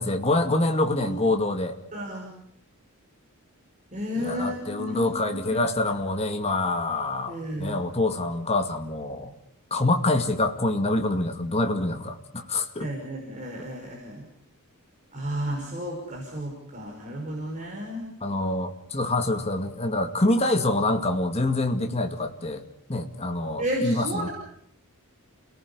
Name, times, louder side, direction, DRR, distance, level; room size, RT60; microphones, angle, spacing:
voice 1, 0.0-1.8 4.2-9.3 9.7-12.9 18.2-24.3, left 2 dB, 30° left, 5 dB, 2.2 m, -26 dB
voice 2, 1.9-2.3 3.9-5.6 7.3-7.8 12.8-14.3 15.1-18.1 23.6-24.3, equal, 35° right, -1 dB, 5.3 m, -32 dB
29.0 x 19.0 x 6.9 m, 0.70 s
head